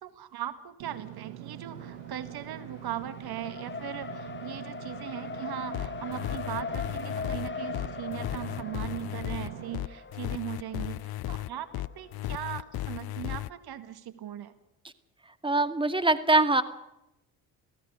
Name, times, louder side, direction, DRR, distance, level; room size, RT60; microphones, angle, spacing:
voice 1, 0.0-11.0 11.3-14.5, right 11 dB, 60° right, 12 dB, 2.1 m, -39 dB
Engine / Mechanisms, 0.8-9.7, right 13 dB, 80° right, 1.2 m, -44 dB
Race car auto racing, 1.7-12.7, left 5 dB, 25° left, 1.8 m, -41 dB
sound 1, 5.7-13.5, left 15 dB, 55° left, 0.8 m, -35 dB
voice 2, 15.4-16.6, right 2 dB, 10° right, 11 dB, 2.1 m, -23 dB
27.5 x 16.5 x 6.5 m, 0.88 s
hypercardioid pair, 60°, 43 cm